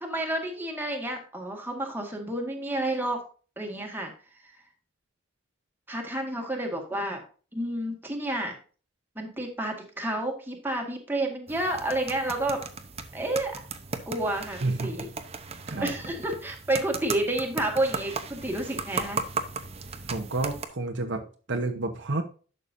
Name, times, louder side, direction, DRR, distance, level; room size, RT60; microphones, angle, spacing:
voice 1, 0.0-3.2 3.6-4.1 4.4-4.5 5.9-7.2 7.5-8.6 9.2-12.6 13.1-13.6 14.1-15.1 15.8-19.2, right 1 dB, 10° right, 1 dB, 1.8 m, -30 dB
sound 1, 11.5-20.7, right 4 dB, 30° right, 0.8 m, -36 dB
voice 2, 14.6-14.9 15.7-15.9 20.1-21.2 21.5-22.2, right 2 dB, 60° right, 4 dB, 1.0 m, -29 dB
11.0 x 6.8 x 2.7 m, 0.38 s
head